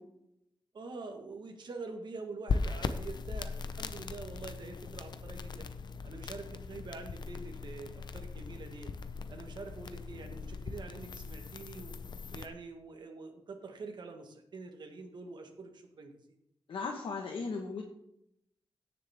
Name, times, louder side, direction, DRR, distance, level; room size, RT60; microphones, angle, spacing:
voice 1, 0.7-5.7 6.0-8.9 9.3-11.9 12.3-16.1, right 3 dB, 60° right, 4 dB, 1.5 m, -45 dB
sound 1, 2.5-12.5, left 4 dB, 55° left, 0.7 m, -39 dB
voice 2, 16.7-17.8, left 4 dB, 80° left, 0 dB, 1.4 m, -36 dB
17.0 x 6.8 x 3.6 m, 0.77 s
wide cardioid pair, 170°, 9 cm